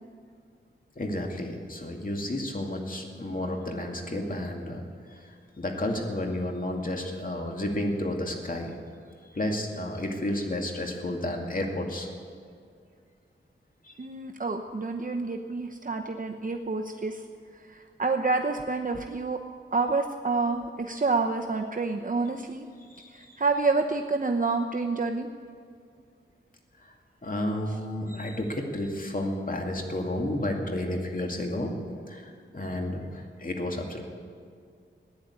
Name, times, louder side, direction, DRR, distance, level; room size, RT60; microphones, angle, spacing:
voice 1, 1.0-4.8 5.1-8.7 9.3-12.1 13.8-13.9 22.9-23.4 26.8-26.9 27.2-31.7 32.1-34.0, left 1 dB, 45° left, 2 dB, 2.4 m, -31 dB
voice 2, 14.0-17.2 17.7-19.4 19.7-22.7 23.1-25.3, right 3 dB, 40° right, 3 dB, 0.9 m, -28 dB
16.0 x 10.5 x 8.5 m, 2.2 s
cardioid pair, 60°, 20 cm